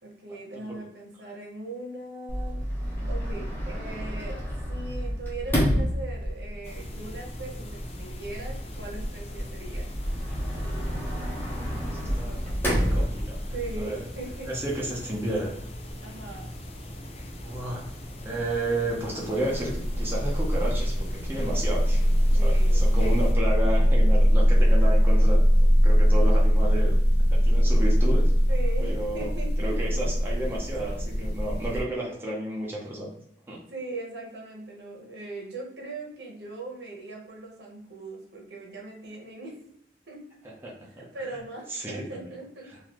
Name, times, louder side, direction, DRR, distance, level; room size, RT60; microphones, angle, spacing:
voice 1, 0.0-9.9 13.5-14.5 16.0-16.5 22.3-22.9 28.5-30.1 33.7-39.6 40.1-40.2 40.9-42.7, right 2 dB, 70° right, -1 dB, 1.2 m, -40 dB
Sliding door, 2.3-13.8, equal, 10° left, 1.0 m, -30 dB
sound 1, 6.6-23.3, left 1 dB, 35° left, 0.5 m, -41 dB
voice 2, 11.1-11.7 12.2-12.5 12.9-13.4 13.8-14.0 14.5-15.5 17.4-17.8 18.2-22.0 22.4-25.4 25.7-27.0 27.3-28.3 28.8-29.3 29.6-33.1 33.5-33.6 40.6-41.1 41.7-42.3, right 1 dB, 10° right, -5 dB, 0.7 m, -32 dB
sound 2, 19.5-31.8, equal, 65° left, 0.9 m, -21 dB
3.9 x 2.7 x 3.1 m, 0.73 s
head